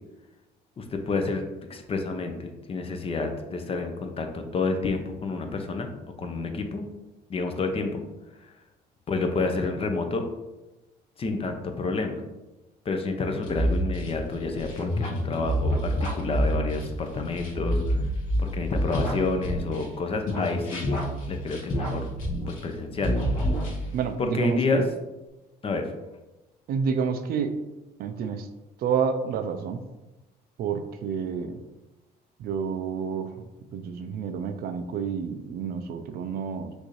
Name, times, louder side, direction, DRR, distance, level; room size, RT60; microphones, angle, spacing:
voice 1, 0.8-1.4 1.7-5.9 6.2-6.8 7.3-8.0 8.4-8.5 9.1-10.3 11.2-12.2 12.8-18.1 18.4-21.0 21.3-22.1 22.5-23.1 24.2-24.8 25.6-25.9, left 3 dB, 35° left, 5 dB, 0.7 m, -29 dB
sound 1, 13.4-20.0 20.3-22.8 23.0-24.1, equal, 55° left, 1.6 m, -28 dB
voice 2, 23.9-24.9 26.7-27.5 28.0-28.5 28.8-29.8 30.6-31.6 32.4-33.3 33.7-36.7, right 6 dB, 65° right, 8 dB, 0.5 m, -29 dB
6.2 x 2.6 x 3.2 m, 1.0 s
cardioid pair, 110°, 17 cm